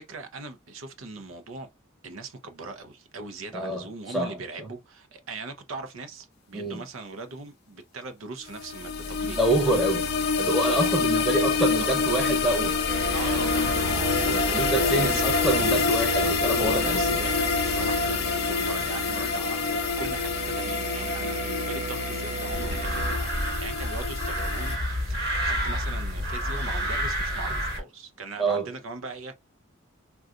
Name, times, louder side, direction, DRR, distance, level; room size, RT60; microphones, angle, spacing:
voice 1, 0.0-1.7 2.0-9.4 10.6-12.2 13.1-15.4 16.2-29.3, right 3 dB, 80° right, 0.6 m, -39 dB
voice 2, 3.5-4.4 6.5-6.8 9.2-10.1 10.4-12.8 14.5-17.0 28.4-28.7, right 2 dB, ahead, 0.8 m, -26 dB
sound 1, 8.5-24.8, left 5 dB, 55° left, 0.6 m, -26 dB
sound 2, 12.9-23.2, right 4 dB, 35° right, 0.3 m, -35 dB
sound 3, 22.5-27.8, equal, 50° right, 1.2 m, -29 dB
3.7 x 2.3 x 2.4 m
head